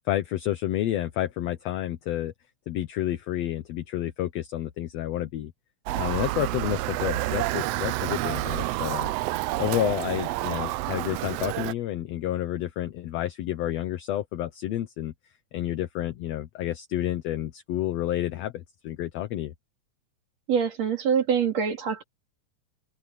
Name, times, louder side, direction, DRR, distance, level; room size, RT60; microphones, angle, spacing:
voice 1, 0.1-2.3 2.7-5.5 5.9-9.1 9.6-15.1 15.5-19.5, left 13 dB, 70° left, 1.9 m, -30 dB
Motor vehicle (road) / Siren, 5.9-11.7, right 17 dB, 90° right, 1.4 m, -29 dB
voice 2, 20.5-22.0, right 7 dB, 60° right, 3.9 m, -24 dB
open air
omnidirectional pair, 3.4 m